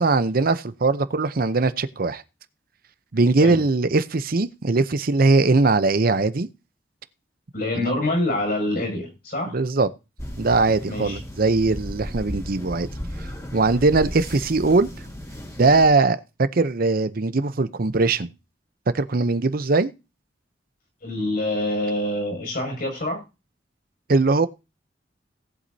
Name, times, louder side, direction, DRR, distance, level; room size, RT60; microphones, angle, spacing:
voice 1, 0.0-2.2 3.1-6.5 7.8-7.9 9.5-9.9 10.4-12.9 13.5-14.9 15.6-18.3 18.9-19.9 24.1-24.5, right 3 dB, 50° right, 0.7 m, -20 dB
voice 2, 7.5-9.6 10.9-11.2 21.0-23.2, left 1 dB, 55° left, 6.3 m, -26 dB
sound 1, 10.2-15.9, equal, 20° left, 2.7 m, -35 dB
18.5 x 8.3 x 2.8 m
head